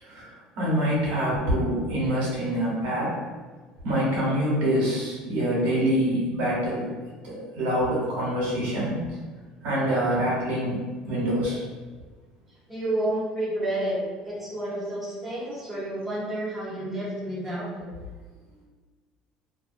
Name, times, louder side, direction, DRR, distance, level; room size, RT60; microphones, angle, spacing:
voice 1, 0.0-3.1 3.8-6.9 7.2-9.0 9.6-10.8 11.1-11.6, equal, 65° right, -6 dB, 1.1 m, -25 dB
voice 2, 12.7-17.9, right 1 dB, 5° right, -9 dB, 1.1 m, -30 dB
2.4 x 2.2 x 2.5 m, 1.4 s
supercardioid pair, 85°, 3 cm